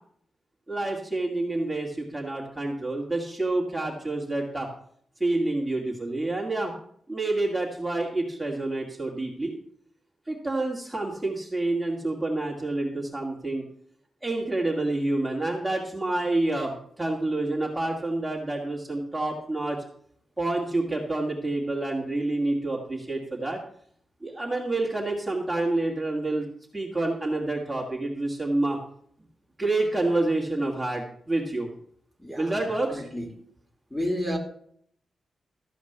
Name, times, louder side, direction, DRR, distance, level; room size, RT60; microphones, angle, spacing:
voice 1, 0.7-4.7 5.2-6.7 7.1-9.6 10.3-13.6 14.2-19.8 20.4-23.6 24.2-26.5 26.7-28.8 29.6-31.7 32.4-33.0, right 2 dB, 10° right, -2 dB, 2.3 m, -28 dB
voice 2, 32.2-32.5 32.9-33.3 33.9-34.4, equal, 5° left, 2 dB, 2.7 m, -30 dB
14.0 x 5.0 x 8.1 m, 0.63 s
cardioid pair, 100°, 0 cm